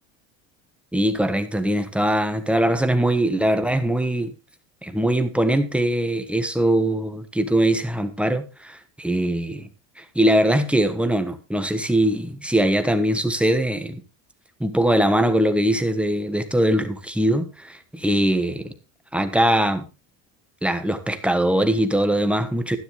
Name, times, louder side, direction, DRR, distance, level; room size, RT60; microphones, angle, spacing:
voice 1, 0.9-4.3 4.8-9.7 10.0-14.0 14.6-18.7 19.1-19.8 20.6-22.8, right 1 dB, 5° right, 8 dB, 1.4 m, -21 dB
11.5 x 10.5 x 3.4 m, 0.29 s
supercardioid pair, 105°, 38 cm